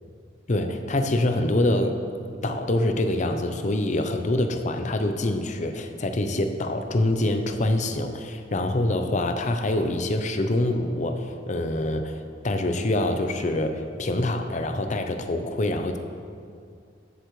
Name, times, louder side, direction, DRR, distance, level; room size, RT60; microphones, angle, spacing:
voice 1, 0.5-2.0 2.4-16.0, left 1 dB, 40° left, 7 dB, 0.6 m, -25 dB
13.5 x 7.9 x 3.2 m, 2.3 s
head